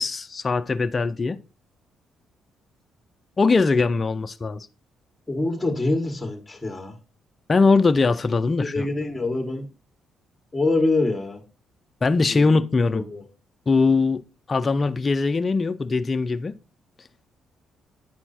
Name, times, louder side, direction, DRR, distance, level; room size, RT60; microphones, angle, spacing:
voice 1, 0.0-1.4 3.4-4.7 7.5-8.9 12.0-13.0 13.7-14.2 14.5-16.5, left 4 dB, 30° left, 0.5 m, -21 dB
voice 2, 5.3-6.9 8.6-9.7 10.5-11.4 12.3-12.6 12.9-13.2, left 2 dB, 10° left, 1.8 m, -25 dB
9.9 x 4.4 x 4.3 m
cardioid pair, 90°, 0 cm